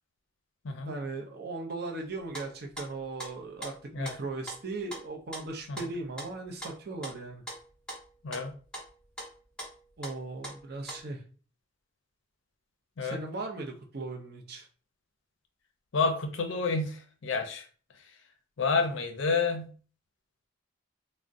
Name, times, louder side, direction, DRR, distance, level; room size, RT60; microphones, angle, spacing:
voice 1, 0.9-7.4 10.0-11.2 13.0-14.7, right 3 dB, 50° right, 2 dB, 0.5 m, -38 dB
sound 1, 2.0-11.0, right 1 dB, 5° left, 0.8 m, -42 dB
voice 2, 15.9-17.6 18.6-19.7, left 4 dB, 65° left, 5 dB, 0.5 m, -29 dB
3.6 x 2.1 x 2.5 m, 0.40 s
head